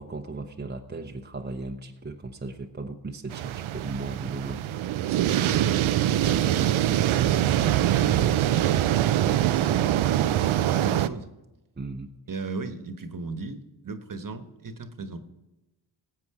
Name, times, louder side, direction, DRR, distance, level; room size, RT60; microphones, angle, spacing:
voice 1, 0.0-4.6 5.3-5.6 11.8-12.1, right 3 dB, 20° right, 3 dB, 0.9 m, -36 dB
sound 1, 3.3-11.1, right 12 dB, 80° right, 0.6 m, -23 dB
voice 2, 6.3-8.8 9.5-11.3 12.3-15.3, right 4 dB, 40° right, 8 dB, 1.4 m, -37 dB
18.5 x 7.7 x 4.9 m, 1.0 s
cardioid pair, 65°, 47 cm